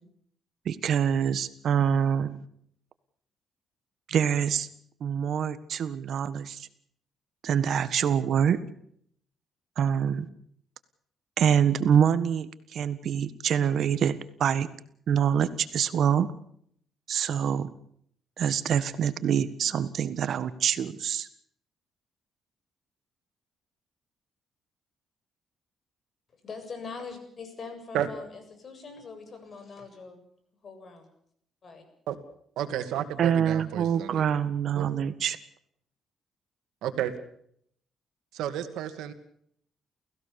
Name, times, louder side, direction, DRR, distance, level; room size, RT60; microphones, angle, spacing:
voice 1, 0.6-2.4 4.1-4.7 5.0-6.7 7.4-8.6 9.8-10.3 11.4-14.7 15.1-16.3 17.1-17.7 18.4-21.3 33.2-35.4, right 8 dB, 65° right, 13 dB, 1.5 m, -25 dB
voice 2, 26.4-30.2 30.6-31.1 31.6-31.8, left 4 dB, 45° left, 7 dB, 7.7 m, -42 dB
voice 3, 32.6-34.3 34.8-34.9 36.8-37.1 38.3-39.1, right 11 dB, 85° right, 9 dB, 2.4 m, -31 dB
29.5 x 16.0 x 7.0 m, 0.68 s
cardioid pair, 90°, 0 cm